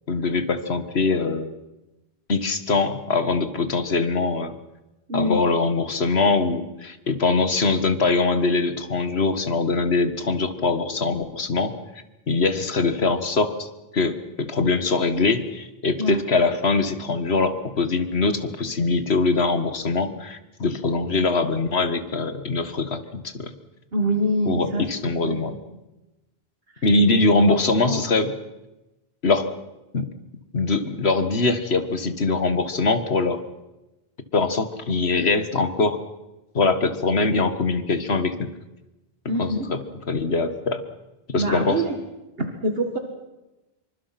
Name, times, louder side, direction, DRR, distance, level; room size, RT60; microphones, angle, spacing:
voice 1, 0.1-1.5 2.3-4.5 5.1-11.8 12.3-13.7 13.9-23.5 24.5-25.5 26.8-28.3 29.2-29.5 29.9-30.1 30.5-33.4 34.3-36.0 36.5-38.5 39.4-39.8 40.1-40.8 41.3-41.8, left 3 dB, 80° left, 10 dB, 1.9 m, -22 dB
voice 2, 5.1-5.4 16.0-16.2 23.9-25.8 26.7-26.8 27.5-28.0 39.3-39.6 41.4-42.0 42.4-43.0, right 1 dB, 70° right, 4 dB, 2.2 m, -25 dB
26.5 x 24.5 x 6.0 m, 1.0 s
omnidirectional pair, 1.1 m